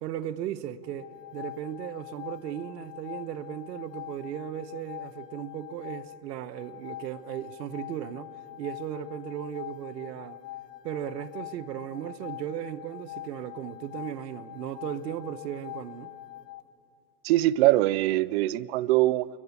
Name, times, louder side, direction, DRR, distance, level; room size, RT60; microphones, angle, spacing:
voice 1, 0.0-8.3 8.6-10.4 10.8-16.1, right 10 dB, 80° right, 1.1 m, -36 dB
sound 1, 0.8-16.6, left 15 dB, 90° left, 1.0 m, -44 dB
voice 2, 17.2-19.3, right 16 dB, 45° right, 0.4 m, -22 dB
29.0 x 11.5 x 9.5 m
supercardioid pair, 145°, 48 cm